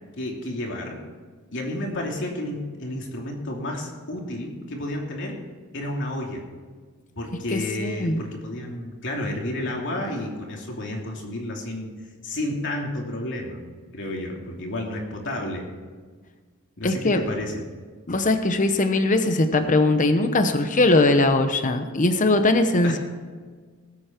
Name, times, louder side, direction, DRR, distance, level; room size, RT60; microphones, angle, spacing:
voice 1, 0.2-1.0 1.5-5.3 5.7-6.5 7.1-11.9 12.2-13.6 13.9-15.7 16.8-17.6 22.8-22.9, left 1 dB, 60° left, 0 dB, 2.9 m, -31 dB
voice 2, 7.5-8.2 16.8-17.2 18.1-23.0, left 2 dB, 35° left, 8 dB, 0.9 m, -20 dB
19.5 x 8.6 x 4.5 m, 1.5 s
head